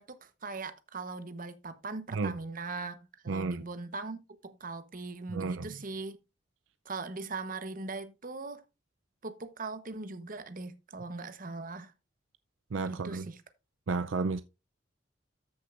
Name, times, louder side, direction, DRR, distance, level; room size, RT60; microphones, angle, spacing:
voice 1, 0.0-3.0 3.2-6.2 6.8-8.6 9.2-11.9 12.9-13.4, right 3 dB, 45° right, 1.0 m, -40 dB
voice 2, 3.3-3.6 5.3-5.7 12.7-13.3 13.9-14.4, right 4 dB, 75° right, 0.5 m, -32 dB
13.5 x 6.5 x 2.5 m
head